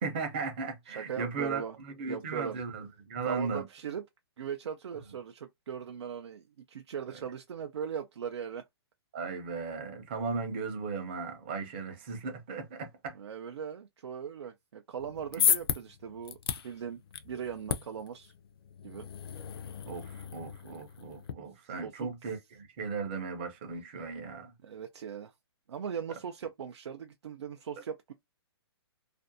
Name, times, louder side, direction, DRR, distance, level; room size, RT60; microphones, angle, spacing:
voice 1, 0.0-3.6 9.1-13.2 15.3-15.5 19.8-24.5, right 4 dB, 25° right, 0.5 m, -36 dB
voice 2, 0.9-1.8 2.1-2.6 3.3-4.1 4.4-8.6 13.1-16.4 16.6-18.3 18.8-19.1 21.6-22.1 24.6-25.3 25.7-28.1, right 7 dB, 90° right, 0.4 m, -39 dB
sound 1, 15.0-21.3, left 8 dB, 60° left, 0.4 m, -34 dB
2.5 x 2.1 x 2.5 m
hypercardioid pair, 170°, 14 cm